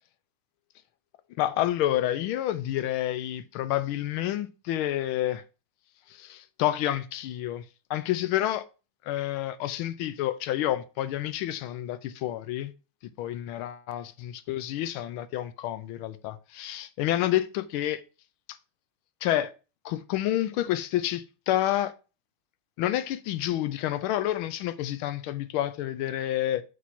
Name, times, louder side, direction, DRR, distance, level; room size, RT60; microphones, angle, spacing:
voice 1, 1.4-5.4 6.1-7.6 7.9-8.6 9.0-12.7 13.2-18.0 19.2-19.5 19.8-21.9 22.8-26.6, left 13 dB, 90° left, 1.5 m, -29 dB
4.6 x 4.2 x 5.6 m
omnidirectional pair, 2.3 m